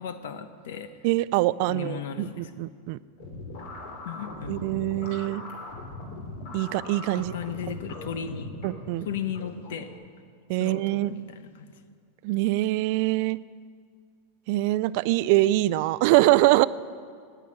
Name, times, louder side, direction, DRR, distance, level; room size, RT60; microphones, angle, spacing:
voice 1, 0.0-0.9 1.7-2.5 4.0-4.7 7.1-8.5 9.0-9.9 10.6-11.7, left 8 dB, 75° left, 10 dB, 0.9 m, -35 dB
voice 2, 1.0-3.0 4.5-5.4 6.5-7.3 7.7-7.8 8.6-9.1 10.5-11.1 12.2-13.4 14.5-16.7, right 18 dB, 50° right, 18 dB, 0.3 m, -24 dB
sound 1, 3.2-9.9, left 2 dB, 55° left, 2.7 m, -40 dB
9.4 x 9.2 x 8.6 m, 2.1 s
supercardioid pair, 155°, 0 cm